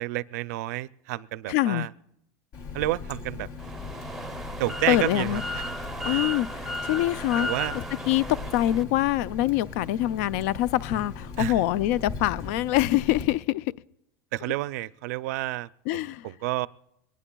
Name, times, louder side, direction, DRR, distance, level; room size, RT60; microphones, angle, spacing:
voice 1, 0.0-1.9 2.7-3.5 4.6-5.8 6.0-6.2 7.4-7.8 11.4-11.6 14.3-16.7, right 17 dB, 85° right, 0.5 m, -30 dB
voice 2, 1.5-1.9 4.9-5.4 6.0-7.5 7.7-13.7 15.9-16.2, left 14 dB, 70° left, 0.4 m, -25 dB
Water tap faucet, 2.5-13.2, left 4 dB, 55° left, 2.9 m, -39 dB
sound 1, 3.6-8.8, equal, ahead, 0.7 m, -35 dB
22.5 x 19.0 x 2.3 m
cardioid pair, 160°, 9 cm